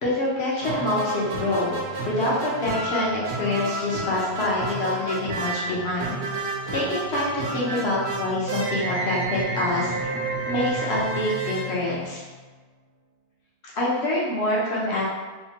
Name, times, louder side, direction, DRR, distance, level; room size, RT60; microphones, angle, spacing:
voice 1, 0.0-1.8 2.1-6.2 6.7-9.9 10.5-12.2 13.6-15.0, left 1 dB, 75° left, -6 dB, 1.1 m, -26 dB
sound 1, 0.6-12.5, right 2 dB, 85° right, 0.9 m, -30 dB
3.3 x 2.1 x 2.8 m, 1.3 s
omnidirectional pair, 1.1 m